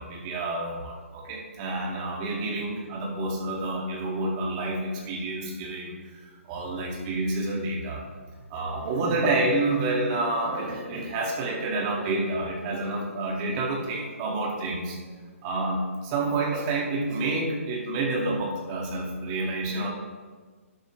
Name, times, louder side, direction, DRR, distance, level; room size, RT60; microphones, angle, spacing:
voice 1, 0.0-5.9 6.5-8.0 8.5-15.0 15.4-19.9, right 2 dB, 30° right, -2 dB, 2.1 m, -28 dB
12.0 x 7.8 x 3.2 m, 1.4 s
figure-of-eight pair, 135°, 8 cm